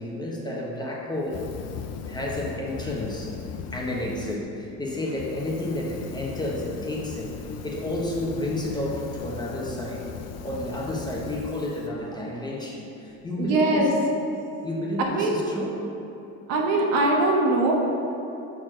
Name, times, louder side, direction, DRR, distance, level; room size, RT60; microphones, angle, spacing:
voice 1, 0.0-1.5 2.1-3.4 3.7-7.4 7.6-10.1 10.4-13.9 14.6-15.8, left 1 dB, 10° left, -3 dB, 1.2 m, -31 dB
Fire, 1.2-4.4 4.8-11.9, left 6 dB, 45° left, 0.6 m, -38 dB
voice 2, 13.4-13.9 15.0-15.4 16.5-17.8, right 2 dB, 75° right, 0 dB, 1.3 m, -22 dB
6.1 x 4.5 x 6.2 m, 2.9 s
supercardioid pair, 110°, 35 cm